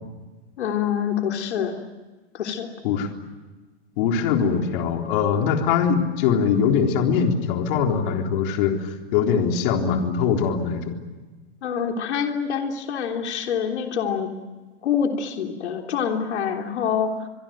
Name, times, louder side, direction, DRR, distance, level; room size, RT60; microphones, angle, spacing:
voice 1, 0.6-1.8 2.3-2.7 11.6-14.3 14.8-17.3, left 7 dB, 85° left, 3 dB, 3.4 m, -26 dB
voice 2, 4.0-10.9, left 6 dB, 50° left, 3 dB, 3.8 m, -22 dB
25.5 x 23.0 x 9.2 m, 1.3 s
supercardioid pair, 145°, 33 cm